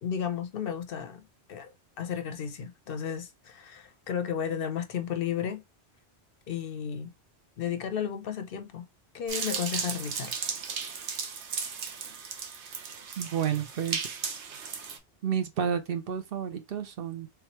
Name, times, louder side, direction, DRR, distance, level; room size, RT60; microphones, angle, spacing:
voice 1, 0.0-5.6 6.5-7.1 7.6-8.9 9.1-10.3, left 8 dB, 65° left, 0.7 m, -33 dB
sound 1, 9.3-15.0, right 6 dB, 85° right, 1.1 m, -35 dB
voice 2, 13.2-14.2 15.2-17.3, right 8 dB, 60° right, 0.7 m, -31 dB
3.3 x 3.0 x 2.9 m
omnidirectional pair, 1.1 m